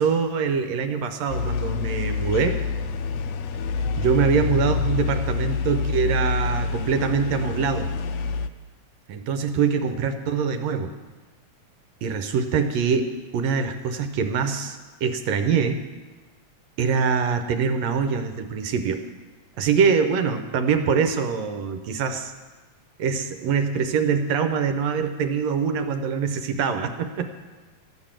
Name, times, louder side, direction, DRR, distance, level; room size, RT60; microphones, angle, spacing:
voice 1, 0.0-2.6 4.0-7.9 9.1-10.9 12.0-15.8 16.8-19.0 19.6-22.3 23.0-27.3, right 6 dB, 70° right, 7 dB, 1.8 m, -24 dB
sound 1, 1.3-8.5, left 5 dB, 75° left, 1.6 m, -27 dB
13.5 x 6.3 x 8.8 m, 1.3 s
omnidirectional pair, 3.3 m